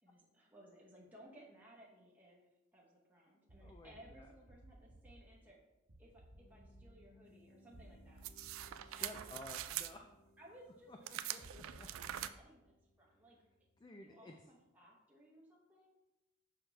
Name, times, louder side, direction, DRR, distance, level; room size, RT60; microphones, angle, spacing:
voice 1, 0.0-2.5 2.7-5.6 6.0-8.3 9.0-9.4 10.4-13.4 13.9-16.0, equal, 10° right, -4 dB, 0.9 m, -61 dB
sound 1, 3.5-4.1 4.5-5.1 5.9-6.8 7.7-8.7 9.0-9.7 11.4-12.2, right 1 dB, 55° right, 1.0 m, -58 dB
voice 2, 3.6-4.3 8.7-10.1 10.9-11.9 13.8-14.3, left 2 dB, 20° left, 3 dB, 0.3 m, -54 dB
Piano, 6.4-13.9, left 1 dB, 80° left, 0.6 m, -68 dB
sound 2, 8.2-9.9 11.1-12.3, right 12 dB, 80° right, 0.3 m, -43 dB
6.5 x 5.8 x 3.3 m, 0.97 s
head